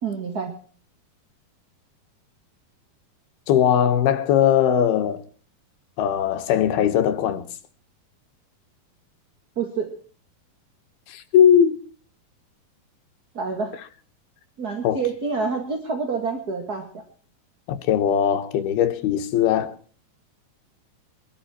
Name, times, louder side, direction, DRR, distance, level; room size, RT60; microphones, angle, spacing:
voice 1, 0.0-0.5 9.5-9.9 13.3-13.7 14.6-17.0, right 5 dB, 35° right, 1.7 m, -27 dB
voice 2, 3.5-5.2 6.0-7.4 11.1-11.8 14.8-15.0 17.7-19.7, left 9 dB, 80° left, 3.3 m, -19 dB
23.0 x 12.5 x 4.5 m
omnidirectional pair, 4.4 m